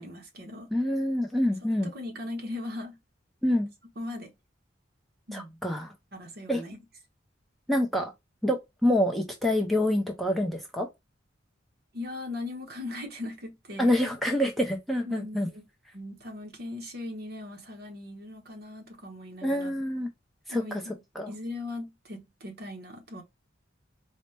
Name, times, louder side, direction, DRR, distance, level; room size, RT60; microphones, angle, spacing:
voice 1, 0.0-0.7 1.6-3.0 4.0-4.3 5.3-5.6 6.1-6.8 11.9-14.0 15.0-15.6 15.9-19.8 20.5-20.9 21.3-23.2, left 2 dB, 55° right, 1.0 m, -39 dB
voice 2, 0.7-1.9 3.4-3.7 5.3-5.9 6.5-6.6 7.7-8.1 8.4-10.9 13.8-15.5 19.4-20.1 20.5-20.6 21.2-21.3, left 1 dB, ahead, 0.5 m, -26 dB
4.1 x 2.1 x 3.2 m
head